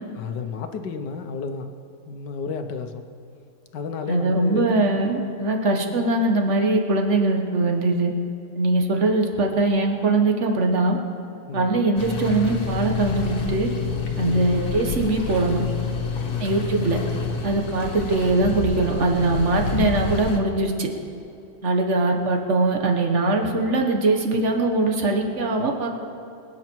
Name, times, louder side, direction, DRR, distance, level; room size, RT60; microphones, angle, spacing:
voice 1, 0.1-1.7 2.1-3.0 3.7-4.8 11.5-11.8 14.2-14.6 16.2-16.5, left 5 dB, 75° left, 7 dB, 1.5 m, -32 dB
voice 2, 4.1-8.1 8.5-11.0 11.5-13.7 14.2-15.6 16.4-17.0 17.4-20.9 21.6-25.9, right 2 dB, 45° right, 3 dB, 1.5 m, -21 dB
sound 1, 12.0-20.4, left 5 dB, 60° left, 1.8 m, -28 dB
25.0 x 9.2 x 4.6 m, 2.7 s
omnidirectional pair, 1.9 m